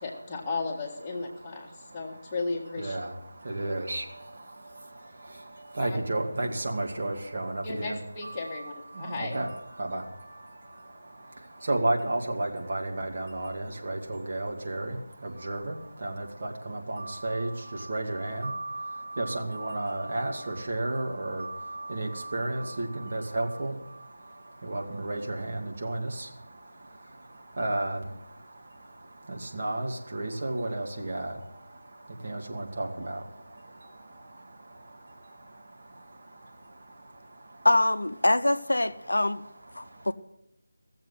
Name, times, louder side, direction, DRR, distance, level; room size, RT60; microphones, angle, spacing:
voice 1, 0.0-3.0 5.8-6.0 7.6-9.5, left 3 dB, 15° left, -2 dB, 1.6 m, -35 dB
voice 2, 2.8-3.1 3.5-4.0 5.8-8.3 9.0-9.5 9.8-10.0 11.7-15.0 15.4-15.7 16.0-17.5 17.9-23.7 24.7-26.1 27.6-28.0 29.5-31.3 32.2-33.2, right 2 dB, 40° right, 1 dB, 1.9 m, -31 dB
voice 3, 37.6-39.4 39.7-40.1, left 1 dB, 70° left, 11 dB, 0.7 m, -24 dB
16.0 x 7.5 x 7.9 m, 0.81 s
figure-of-eight pair, 160°, 0 cm